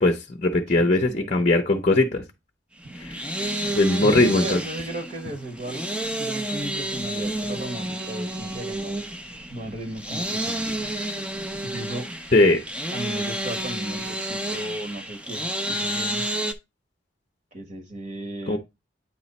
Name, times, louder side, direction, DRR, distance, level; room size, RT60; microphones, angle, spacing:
voice 1, 0.0-2.2 3.0-3.2 3.7-4.6 12.3-12.6 18.5-18.6, left 2 dB, 35° left, 0.6 m, -20 dB
voice 2, 0.7-1.3 2.8-3.0 4.0-5.8 6.1-9.0 9.5-10.9 11.6-12.1 12.9-16.2 17.5-18.6, right 1 dB, 40° right, 1.1 m, -35 dB
sound 1, 2.8-16.5, right 1 dB, 5° right, 0.4 m, -30 dB
8.5 x 3.0 x 4.1 m
head